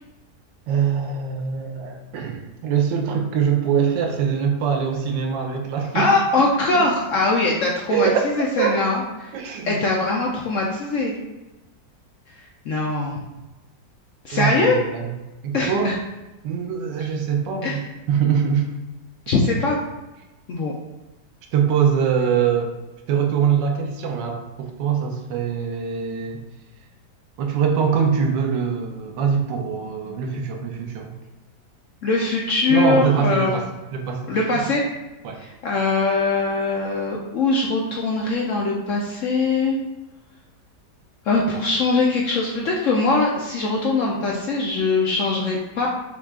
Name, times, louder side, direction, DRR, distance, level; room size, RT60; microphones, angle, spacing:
voice 1, 0.7-6.1 6.4-6.5 6.7-6.9 7.9-8.2 8.6-8.8 9.3-9.8 14.3-15.1 15.4-16.0 16.4-18.7 21.5-22.7 23.1-26.4 27.4-31.1 32.7-33.7 33.9-34.4 35.2-35.4, right 7 dB, 90° right, 3 dB, 1.4 m, -23 dB
voice 2, 5.9-8.1 8.4-9.3 9.6-11.2 12.6-13.2 14.2-14.8 15.5-15.9 17.6-17.8 19.3-19.8 20.5-20.7 32.0-33.6 34.3-34.8 35.4-39.8 41.2-45.9, left 3 dB, 70° left, -2 dB, 0.7 m, -22 dB
6.4 x 2.3 x 3.5 m, 1.1 s
omnidirectional pair, 1.9 m